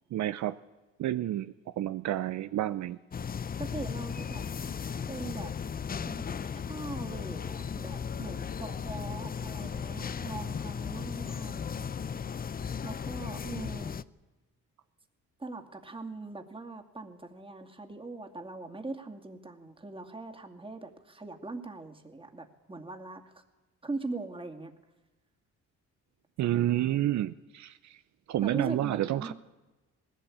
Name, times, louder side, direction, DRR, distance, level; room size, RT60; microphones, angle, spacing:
voice 1, 0.1-0.5 1.0-3.0 26.4-28.0 28.3-29.3, right 13 dB, 65° right, 13 dB, 0.6 m, -30 dB
sound 1, 3.1-14.0, left 7 dB, 30° left, 0.6 m, -36 dB
voice 2, 3.6-4.4 5.1-5.5 6.1-6.2 6.7-11.9 12.8-14.0 15.4-23.4 23.8-24.7 28.4-29.3, right 3 dB, 15° right, 4 dB, 2.4 m, -41 dB
19.0 x 16.0 x 8.7 m, 1.1 s
cardioid pair, 90°, 30 cm